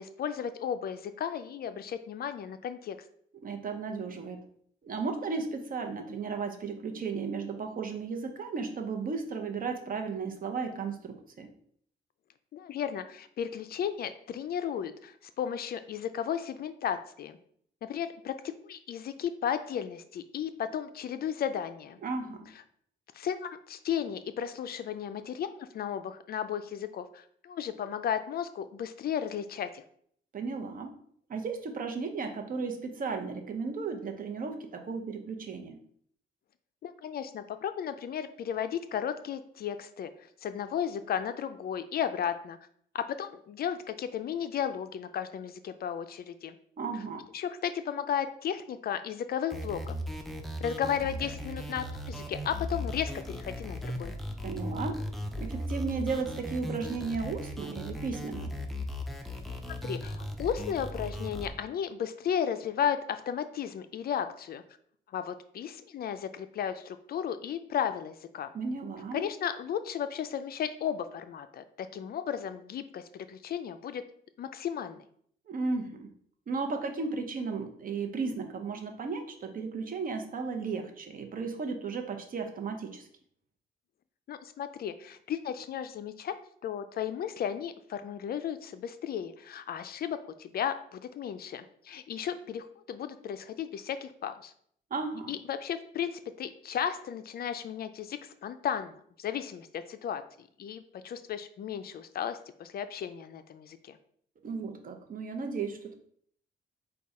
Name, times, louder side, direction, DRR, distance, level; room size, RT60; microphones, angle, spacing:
voice 1, 0.0-3.0 12.5-17.4 17.8-22.0 23.1-29.8 36.8-40.1 40.4-42.6 42.9-46.6 47.3-49.9 50.6-54.1 59.7-64.6 65.1-68.5 69.1-74.0 74.4-75.0 84.3-86.3 86.6-94.5 95.3-98.9 99.2-104.0, left 8 dB, 50° left, 10 dB, 0.4 m, -34 dB
voice 2, 3.4-4.4 4.8-11.5 22.0-22.5 30.3-31.0 31.3-35.8 46.8-47.2 54.4-55.0 55.3-58.5 68.5-69.2 75.5-76.1 76.5-83.1 94.9-95.4 104.4-105.9, right 4 dB, 45° right, 5 dB, 0.7 m, -35 dB
sound 1, 49.5-61.5, equal, ahead, 0.5 m, -37 dB
4.8 x 2.3 x 4.1 m, 0.64 s
cardioid pair, 90°, 20 cm